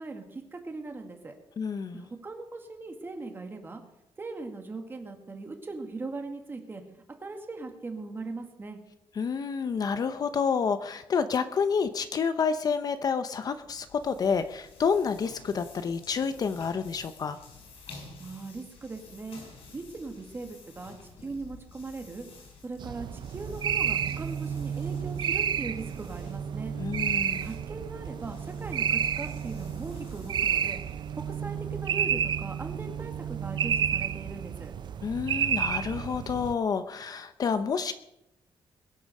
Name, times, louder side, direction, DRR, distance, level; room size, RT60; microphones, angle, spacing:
voice 1, 0.0-1.3 1.9-3.8 4.2-6.8 7.2-8.8 18.2-19.4 19.7-20.9 21.2-22.3 22.6-26.7 27.3-30.8 31.4-34.7, right 3 dB, 20° right, 4 dB, 2.1 m, -39 dB
voice 2, 1.6-2.0 9.2-17.4 26.8-27.5 35.0-37.9, left 6 dB, 40° left, 11 dB, 0.7 m, -29 dB
sound 1, 13.5-32.0, left 4 dB, 75° left, 6.7 m, -52 dB
sound 2, 22.8-36.5, right 8 dB, 50° right, 0.6 m, -31 dB
21.5 x 8.5 x 6.5 m, 0.84 s
wide cardioid pair, 175°, 10 cm